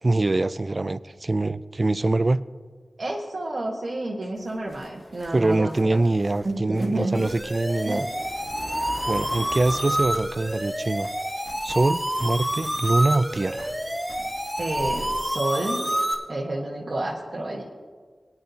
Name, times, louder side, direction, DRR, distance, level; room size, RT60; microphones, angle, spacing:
voice 1, 0.0-2.4 5.3-8.1 9.1-11.1 11.6-13.7, right 2 dB, 45° right, 16 dB, 0.3 m, -24 dB
voice 2, 3.0-6.0 6.4-7.3 7.9-8.0 14.6-15.8 16.3-17.6, right 1 dB, 60° right, -2 dB, 1.3 m, -29 dB
sound 1, 4.4-10.8 11.0-15.1, left 1 dB, 50° left, 1.9 m, -43 dB
sound 2, 7.1-16.1, equal, 5° right, 1.6 m, -28 dB
18.5 x 9.7 x 2.8 m, 1.5 s
wide cardioid pair, 55°, 0 cm